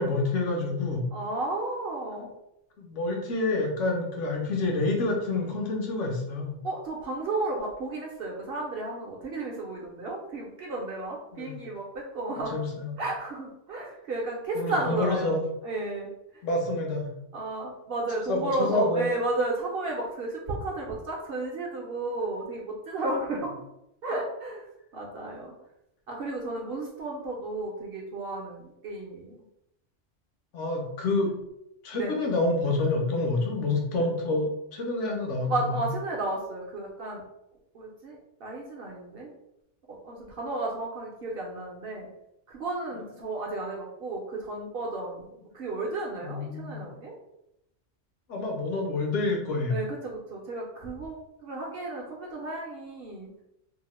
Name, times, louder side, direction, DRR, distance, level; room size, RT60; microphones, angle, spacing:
voice 1, 0.0-1.0 2.8-6.6 11.3-11.6 12.5-12.9 14.6-15.4 16.4-17.1 18.3-19.1 30.5-31.3 31.8-35.8 46.2-46.8 48.3-49.8, left 2 dB, 75° left, 1 dB, 1.0 m, -28 dB
voice 2, 1.1-2.3 6.6-12.6 13.0-15.4 15.6-16.4 17.3-23.5 24.0-24.6 24.9-25.5 26.1-29.4 31.9-32.1 35.4-37.2 37.7-39.3 39.9-42.1 42.5-45.3 45.5-47.1 49.7-53.3, right 2 dB, 60° right, -1 dB, 0.7 m, -33 dB
2.8 x 2.0 x 3.0 m, 0.84 s
omnidirectional pair, 1.3 m